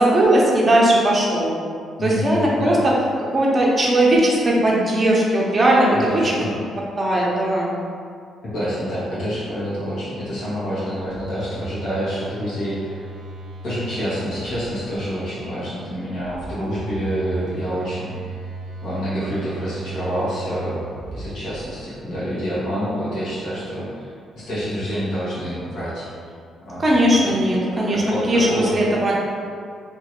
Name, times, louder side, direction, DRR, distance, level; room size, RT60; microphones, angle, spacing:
voice 1, 0.0-1.5 2.0-2.9 3.3-6.4 7.0-7.7 26.8-28.0 28.3-29.2, right 1 dB, 30° right, -4 dB, 0.7 m, -18 dB
voice 2, 2.0-2.8 5.9-6.5 8.5-13.0 13.6-18.1 18.8-20.8 21.1-23.9 24.3-26.1 26.6-26.8 27.2-27.3 27.9-28.7, equal, 70° left, -10 dB, 1.4 m, -27 dB
Telephone, 11.0-15.0 16.2-21.9, right 3 dB, 75° right, 0.3 m, -36 dB
2.8 x 2.6 x 3.1 m, 2.2 s
cardioid pair, 90°, 0 cm